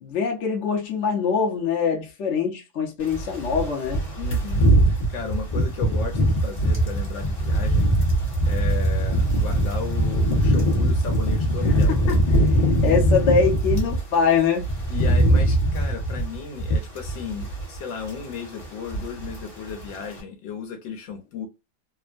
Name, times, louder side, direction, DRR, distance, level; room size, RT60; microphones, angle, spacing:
voice 1, 0.0-4.0 11.7-12.2 12.6-14.7, left 6 dB, 50° left, 0.9 m, -23 dB
sound 1, 3.1-14.0 14.4-17.8 18.0-18.3 18.6-19.4 19.7-19.9, right 1 dB, 30° left, 0.9 m, -21 dB
voice 2, 4.2-7.9 8.4-12.0 14.9-21.5, left 6 dB, 75° left, 1.4 m, -35 dB
3.5 x 2.1 x 2.4 m
omnidirectional pair, 2.1 m